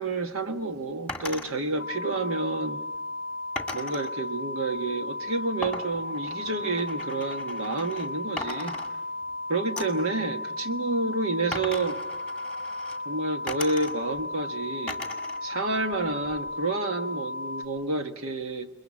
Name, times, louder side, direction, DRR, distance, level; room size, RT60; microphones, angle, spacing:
voice 1, 0.0-2.8 3.7-8.8 9.5-12.0 13.0-15.0 15.4-18.7, right 2 dB, 80° right, 6 dB, 1.4 m, -29 dB
sound 1, 1.1-1.5 3.5-4.1 5.6-8.1 8.4-9.3 9.8-10.1 11.5-13.0 13.5-14.2 14.9-15.4 15.8-16.5, left 2 dB, 5° left, 1.9 m, -38 dB
sound 2, 1.8-17.7, left 2 dB, 10° right, 3.5 m, -35 dB
28.5 x 22.0 x 7.3 m, 1.0 s
head